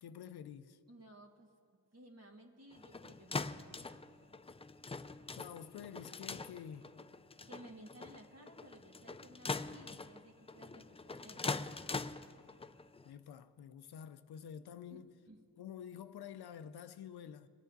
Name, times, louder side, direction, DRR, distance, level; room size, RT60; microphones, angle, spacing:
voice 1, 0.0-0.8 5.3-6.9 13.0-15.1 15.6-17.5, left 8 dB, 65° left, 0.6 m, -49 dB
voice 2, 0.9-1.5 1.9-4.1 7.5-11.5 14.3-14.4 14.9-15.0 15.3-15.4, right 1 dB, 40° right, 2.0 m, -57 dB
sound 1, 2.7-13.1, left 3 dB, 15° left, 0.4 m, -43 dB
22.0 x 9.0 x 4.0 m
cardioid pair, 65°, 41 cm